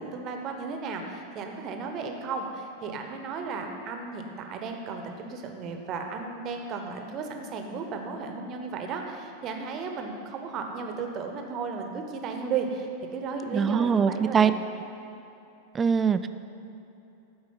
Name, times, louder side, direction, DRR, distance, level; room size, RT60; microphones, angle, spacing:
voice 1, 0.0-14.5, right 5 dB, 35° right, 4 dB, 1.0 m, -34 dB
voice 2, 13.5-14.5 15.7-16.3, right 6 dB, 20° right, 12 dB, 0.3 m, -22 dB
12.0 x 4.8 x 5.6 m, 2.9 s
figure-of-eight pair, 90°, 0 cm